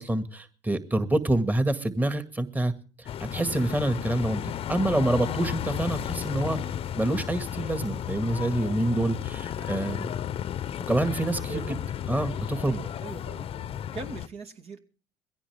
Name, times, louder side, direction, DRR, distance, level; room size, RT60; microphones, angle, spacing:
voice 1, 0.0-2.7 3.0-4.4 4.7-10.1 10.9-11.5 12.1-12.8, right 1 dB, 15° right, 1.9 m, -27 dB
sound 1, 3.1-14.3, left 10 dB, 55° left, 0.8 m, -33 dB
voice 2, 9.6-10.1 11.5-11.8 12.6-13.5 13.9-14.8, right 4 dB, 60° right, 2.5 m, -40 dB
22.0 x 16.5 x 3.5 m
supercardioid pair, 80°, 12 cm